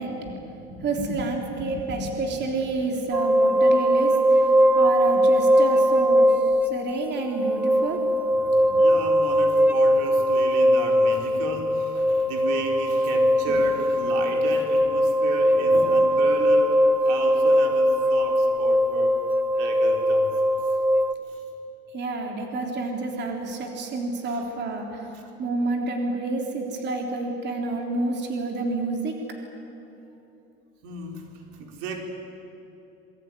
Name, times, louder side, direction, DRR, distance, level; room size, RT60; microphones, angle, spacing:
voice 1, 0.0-6.4 6.7-8.1 8.7-8.8 21.9-25.1 25.4-29.2, right 3 dB, 35° right, 2 dB, 3.5 m, -29 dB
sound 1, 3.1-21.1, equal, 5° right, 0.6 m, -20 dB
voice 2, 8.7-19.2 19.5-20.6 21.3-21.4 24.3-24.4 25.1-25.3 30.8-32.0, right 4 dB, 85° right, 2 dB, 4.6 m, -34 dB
27.5 x 22.5 x 9.8 m, 2.9 s
cardioid pair, 150°, 29 cm